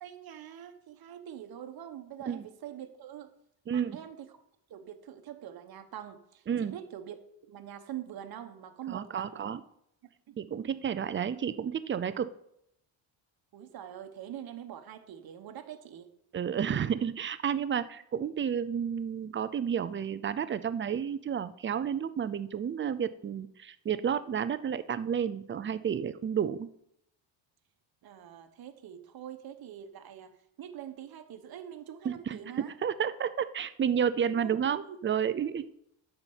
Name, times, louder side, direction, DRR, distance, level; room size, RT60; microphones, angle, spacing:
voice 1, 0.0-3.3 3.7-4.4 4.7-7.2 7.4-9.5 10.3-10.4 13.5-16.1 28.0-32.7 34.3-34.6 34.9-35.0, right 10 dB, 50° right, 7 dB, 1.1 m, -44 dB
voice 2, 3.7-4.0 6.5-6.7 8.9-9.6 10.4-12.3 16.3-26.7 32.0-35.7, right 8 dB, 25° right, 13 dB, 0.4 m, -31 dB
9.6 x 4.5 x 7.1 m, 0.76 s
cardioid pair, 130°, 48 cm